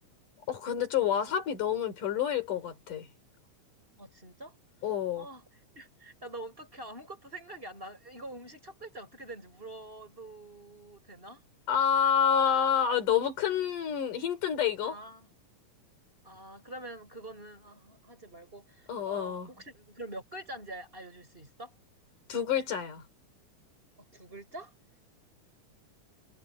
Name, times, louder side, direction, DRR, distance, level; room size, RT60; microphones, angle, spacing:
voice 1, 0.5-3.1 4.8-5.3 11.7-15.0 18.9-19.5 22.3-23.0, left 8 dB, 85° left, 4.9 m, -28 dB
voice 2, 4.0-4.6 5.2-5.4 5.7-11.4 14.8-15.3 16.2-21.7 24.1-24.7, right 1 dB, 15° right, 5.6 m, -45 dB
omnidirectional pair, 3.6 m